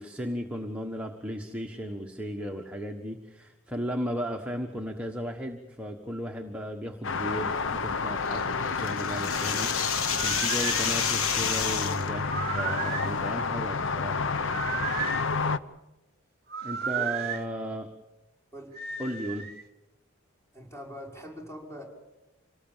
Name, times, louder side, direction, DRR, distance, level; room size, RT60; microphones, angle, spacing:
voice 1, 0.0-14.7 16.6-17.9 19.0-19.5, equal, 5° right, 2 dB, 1.3 m, -35 dB
sound 1, 7.0-15.6, left 4 dB, 65° left, 0.8 m, -30 dB
sound 2, 8.3-12.1, left 7 dB, 90° left, 1.4 m, -30 dB
sound 3, 10.0-10.9 12.2-13.2 14.5-15.3 16.5-17.4 18.7-19.6, right 7 dB, 50° right, 1.0 m, -33 dB
voice 2, 20.5-21.8, equal, 15° left, -1 dB, 5.8 m, -43 dB
27.0 x 19.0 x 7.3 m, 0.99 s
head